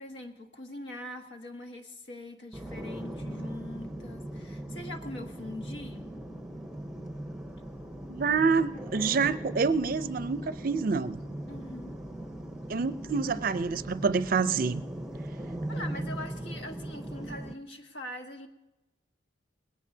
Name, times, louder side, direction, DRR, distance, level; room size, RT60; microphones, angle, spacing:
voice 1, 0.0-6.1 11.5-12.0 15.7-18.5, left 1 dB, 75° left, 5 dB, 1.3 m, -42 dB
sound 1, 2.5-17.5, right 1 dB, 5° right, 0.7 m, -39 dB
voice 2, 8.1-11.2 12.7-14.8, right 5 dB, 50° right, 14 dB, 0.5 m, -27 dB
19.5 x 17.0 x 2.7 m, 1.0 s
head